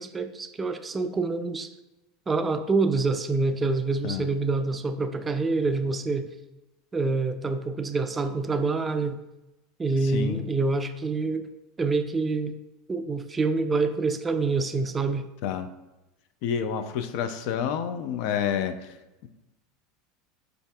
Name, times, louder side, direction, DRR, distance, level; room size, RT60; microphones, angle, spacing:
voice 1, 0.0-1.7 2.3-6.3 6.9-9.2 9.8-11.5 11.8-12.6 12.9-15.3, right 3 dB, 20° right, 8 dB, 0.3 m, -26 dB
voice 2, 10.0-10.4 15.4-15.7 16.4-18.8, left 8 dB, 65° left, 9 dB, 0.3 m, -29 dB
4.7 x 2.5 x 2.2 m, 0.99 s
hypercardioid pair, 95°, 0 cm